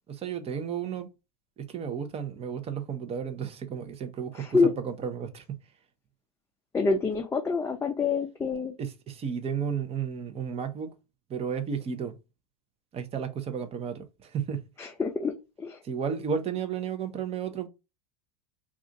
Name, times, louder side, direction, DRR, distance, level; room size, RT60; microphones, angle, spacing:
voice 1, 0.1-1.1 1.6-5.6 8.8-10.9 11.3-12.2 12.9-14.7 15.8-17.7, right 7 dB, 30° right, 0.6 m, -33 dB
voice 2, 4.4-4.7 6.7-8.7 14.8-15.8, left 4 dB, 10° left, 0.4 m, -27 dB
2.4 x 2.4 x 3.9 m
hypercardioid pair, 105°, 21 cm